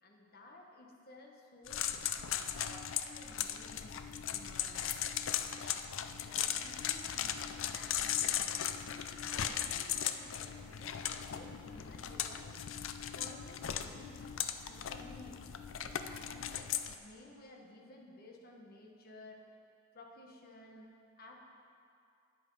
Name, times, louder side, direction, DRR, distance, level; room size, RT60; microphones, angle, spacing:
voice 1, 0.0-5.1 6.2-8.8 9.4-12.5 13.1-15.5 15.8-19.4 19.9-20.9 21.2-21.4, left 2 dB, 45° left, 0 dB, 1.2 m, -55 dB
sound 1, 1.7-16.9, left 9 dB, 65° left, 0.4 m, -38 dB
9.2 x 8.5 x 5.4 m, 2.5 s
head